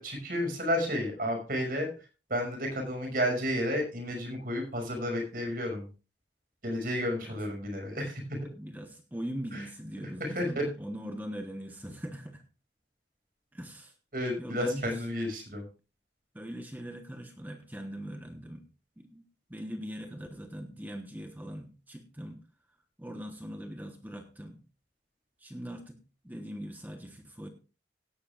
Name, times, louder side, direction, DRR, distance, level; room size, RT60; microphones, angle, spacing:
voice 1, 0.0-1.9 2.3-5.9 6.6-8.4 9.5-9.6 10.2-10.6 14.1-15.6, equal, 50° right, 3 dB, 5.7 m, -31 dB
voice 2, 8.5-12.4 13.5-13.9 14.4-15.0 16.3-18.7 19.0-19.2 19.5-22.4 23.0-24.6 25.4-26.0 26.2-27.5, equal, 10° right, 5 dB, 1.1 m, -41 dB
17.5 x 11.5 x 2.4 m, 0.34 s
head